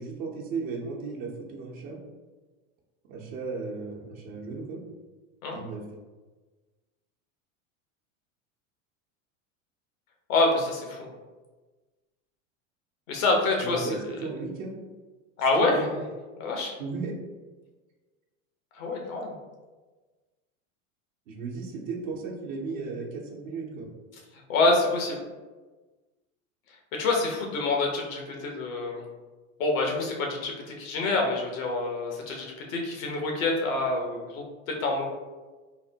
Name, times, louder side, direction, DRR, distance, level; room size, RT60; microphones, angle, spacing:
voice 1, 0.0-2.0 3.1-4.8 5.5-5.8 13.6-14.7 15.6-15.9 16.8-17.1 21.3-23.9, right 4 dB, 70° right, -3 dB, 0.8 m, -35 dB
voice 2, 10.3-11.1 13.1-13.9 14.2-14.3 15.4-15.9 16.4-16.7 18.7-19.3 24.5-25.2 26.9-29.1 29.6-35.1, left 2 dB, 85° left, 0 dB, 0.9 m, -26 dB
4.0 x 2.1 x 2.7 m, 1.3 s
hypercardioid pair, 100°, 40 cm